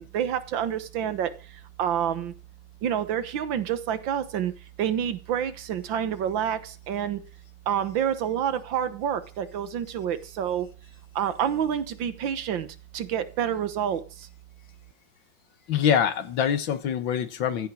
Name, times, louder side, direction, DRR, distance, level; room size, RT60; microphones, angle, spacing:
voice 1, 0.1-1.3 1.8-2.3 2.8-4.5 4.8-7.2 7.7-10.7 11.2-12.7 12.9-14.0, right 9 dB, 85° right, 1.9 m, -28 dB
voice 2, 15.7-17.7, left 8 dB, 85° left, 2.0 m, -24 dB
15.0 x 8.7 x 6.2 m
omnidirectional pair, 2.0 m